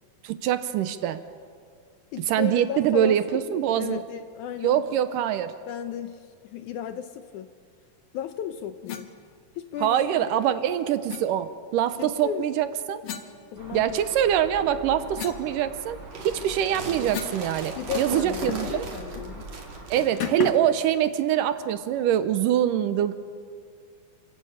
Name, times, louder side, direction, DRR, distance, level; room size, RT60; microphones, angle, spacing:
voice 1, 0.2-1.2 2.3-4.0 4.6-5.5 9.8-13.0 13.7-16.0 16.2-18.8 19.9-23.1, right 10 dB, 75° right, 11 dB, 2.3 m, -24 dB
voice 2, 2.1-4.8 5.7-7.5 8.1-9.1 9.6-10.5 12.0-12.5 13.5-14.0 17.7-19.5, left 9 dB, 75° left, 9 dB, 1.9 m, -35 dB
sound 1, 8.8-9.1 11.1-11.3 13.0-14.1 14.5-17.4 17.7-17.8 18.1-18.8 19.1-19.3 20.2-20.7, left 8 dB, 55° left, 1.5 m, -36 dB
sound 2, 13.6-19.9, right 2 dB, 35° right, 5.0 m, -43 dB
sound 3, 16.0-20.3, right 3 dB, 50° right, 3.7 m, -37 dB
29.5 x 14.0 x 8.7 m, 2.2 s
omnidirectional pair, 4.1 m